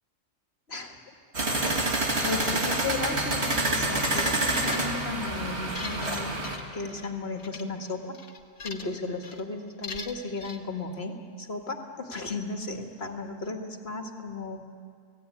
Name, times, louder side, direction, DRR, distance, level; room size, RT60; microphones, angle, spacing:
sound 1, 1.3-6.6, right 2 dB, 70° right, 2.9 m, -27 dB
voice 1, 2.2-6.4 6.7-8.2 8.6-14.6, left 3 dB, 65° left, 4 dB, 2.2 m, -35 dB
sound 2, 4.5-5.1 5.6-7.1 7.4-7.6 8.1-9.0 9.2-9.4 9.8-10.6, left 4 dB, 85° left, 1.9 m, -40 dB
29.5 x 18.0 x 9.8 m, 2.2 s
omnidirectional pair, 1.2 m